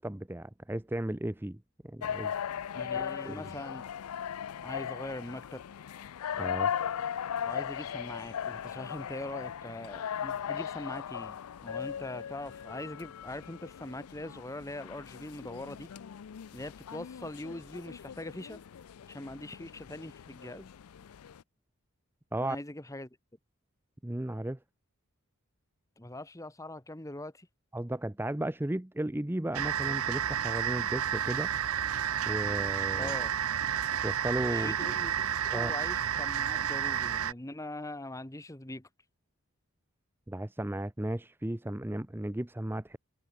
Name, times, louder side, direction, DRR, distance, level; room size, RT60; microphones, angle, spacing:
voice 1, 0.0-2.3 3.2-3.5 6.4-6.7 22.3-22.6 24.0-24.6 27.7-31.5 32.3-33.1 34.0-34.8 35.5-35.7 40.3-43.0, right 1 dB, 10° right, 0.6 m, -35 dB
sound 1, 2.0-21.4, left 8 dB, 80° left, 0.4 m, -38 dB
voice 2, 2.7-3.9 4.6-5.6 7.4-15.9 16.5-18.6 19.1-20.7 22.4-23.1 26.0-27.5 33.0-33.3 34.5-35.1 35.4-38.9, left 1 dB, 15° left, 1.2 m, -42 dB
sound 2, 8.8-19.1, left 2 dB, 55° left, 5.9 m, -66 dB
sound 3, 29.5-37.3, right 9 dB, 75° right, 0.7 m, -31 dB
head